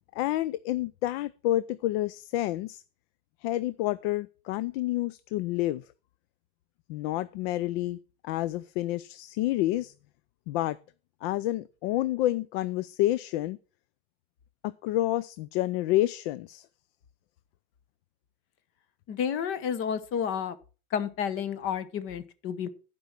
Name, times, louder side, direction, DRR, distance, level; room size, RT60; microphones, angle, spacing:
voice 1, 0.2-2.8 3.4-5.8 6.9-8.0 8.2-9.9 10.5-10.8 11.2-13.6 14.6-16.7, left 15 dB, 60° left, 16 dB, 0.5 m, -29 dB
voice 2, 19.1-20.6 20.9-22.7, left 7 dB, 40° left, 14 dB, 0.9 m, -31 dB
11.5 x 5.3 x 5.9 m, 0.36 s
cardioid pair, 170°, 34 cm